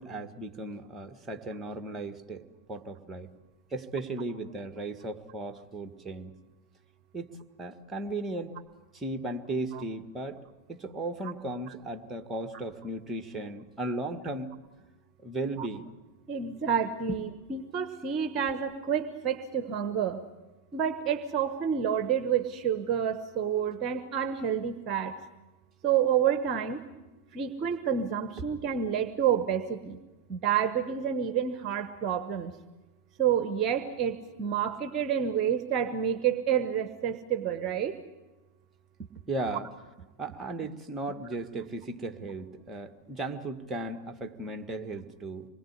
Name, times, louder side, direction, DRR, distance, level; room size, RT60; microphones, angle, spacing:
voice 1, 0.0-3.3 3.7-6.3 7.1-7.3 7.6-8.5 8.9-10.4 10.7-14.6 15.2-15.9 39.3-39.7 40.2-45.5, right 2 dB, 15° right, 5 dB, 1.7 m, -36 dB
voice 2, 16.3-20.2 20.7-25.1 25.8-26.8 27.3-30.0 30.3-32.5 33.2-37.9, right 8 dB, 30° right, 9 dB, 1.2 m, -29 dB
26.0 x 21.0 x 8.3 m, 1.1 s
figure-of-eight pair, 90°, 0 cm